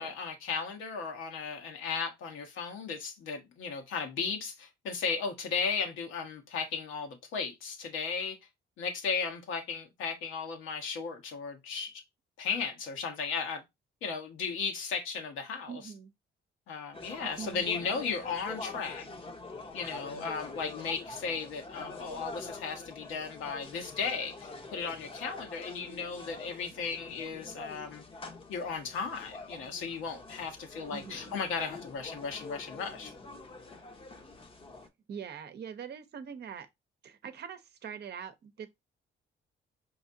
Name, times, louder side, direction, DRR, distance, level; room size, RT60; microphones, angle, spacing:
voice 1, 0.0-8.4 8.8-12.0 12.4-13.6 14.0-15.8 16.7-19.1 19.7-28.0 28.5-33.1, left 5 dB, 85° left, 1.2 m, -35 dB
voice 2, 15.7-16.1 17.1-17.9 30.9-31.4 35.1-36.7 37.0-38.7, right 7 dB, 55° right, 0.7 m, -43 dB
sound 1, 16.9-34.9, left 3 dB, 25° left, 0.7 m, -45 dB
4.9 x 3.1 x 2.6 m
cardioid pair, 90°, 20 cm